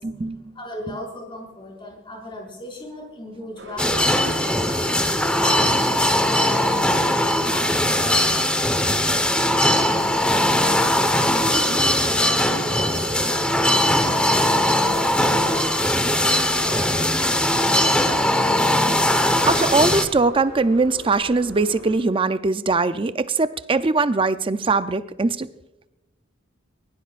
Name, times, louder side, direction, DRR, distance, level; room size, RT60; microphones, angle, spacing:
voice 1, 0.0-0.5 0.9-1.0 19.5-25.5, right 3 dB, 25° right, 12 dB, 0.5 m, -21 dB
voice 2, 0.5-4.6 5.3-6.9 7.4-8.6 9.0-10.2 11.1-17.4, left 1 dB, 25° left, -2 dB, 5.8 m, -37 dB
sound 1, 3.6-21.9, right 1 dB, 75° right, 6.7 m, -40 dB
sound 2, 3.8-20.1, left 1 dB, 5° left, 1.1 m, -20 dB
22.5 x 20.5 x 2.5 m, 1.0 s
head